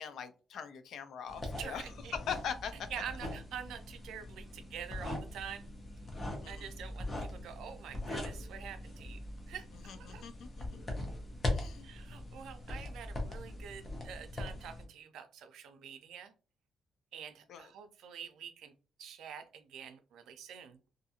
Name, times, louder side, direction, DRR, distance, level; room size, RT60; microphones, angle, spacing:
voice 1, 0.0-2.9 6.4-6.7 9.8-10.8 11.5-11.9 17.5-17.7, left 7 dB, 60° left, 10 dB, 0.4 m, -42 dB
sound 1, 1.3-14.8, left 1 dB, 20° left, 0.6 m, -41 dB
voice 2, 1.6-2.1 2.9-5.6 6.5-9.2 9.5-10.2 11.8-16.3 17.1-18.7 19.0-20.8, right 8 dB, 90° right, 8 dB, 0.4 m, -46 dB
2.5 x 2.4 x 2.8 m, 0.36 s
cardioid pair, 180°, 0 cm